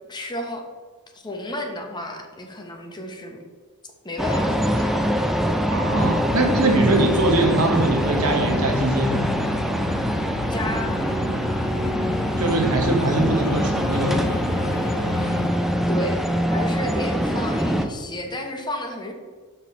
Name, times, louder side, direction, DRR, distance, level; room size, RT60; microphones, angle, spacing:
voice 1, 0.1-0.6 1.1-3.4 4.0-5.2 10.5-10.9 15.9-16.2 16.5-19.1, left 1 dB, 20° left, 3 dB, 0.9 m, -32 dB
sound 1, 4.2-17.9, equal, ahead, 0.4 m, -23 dB
voice 2, 5.7-9.2 12.4-14.2, right 2 dB, 70° right, 2 dB, 1.1 m, -22 dB
sound 2, 6.0-15.5, left 5 dB, 85° left, 0.4 m, -34 dB
5.5 x 4.3 x 5.6 m, 1.4 s
head